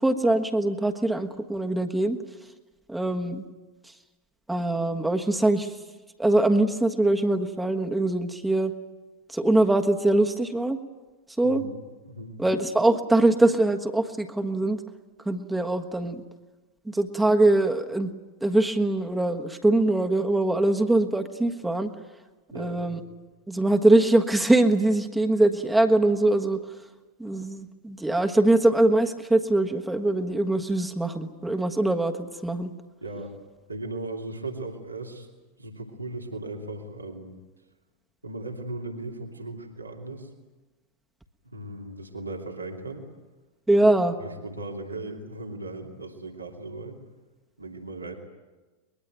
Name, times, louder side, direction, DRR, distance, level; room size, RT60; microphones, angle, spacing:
voice 1, 0.0-2.2 2.9-3.4 4.5-5.7 6.2-8.7 9.3-10.8 11.4-11.6 12.4-14.8 15.2-16.2 16.9-18.1 18.4-21.9 22.5-23.0 23.5-26.6 27.2-32.7 43.7-44.1, right 2 dB, 5° right, 5 dB, 1.5 m, -22 dB
voice 2, 11.4-11.8 12.0-12.4 22.5-23.0 33.0-33.3 33.7-35.3 35.6-37.3 38.2-40.3 41.4-43.0 44.2-47.0 47.6-48.1, right 2 dB, 80° right, 2 dB, 2.9 m, -37 dB
23.0 x 21.5 x 9.1 m, 1.2 s
figure-of-eight pair, 90°, 0 cm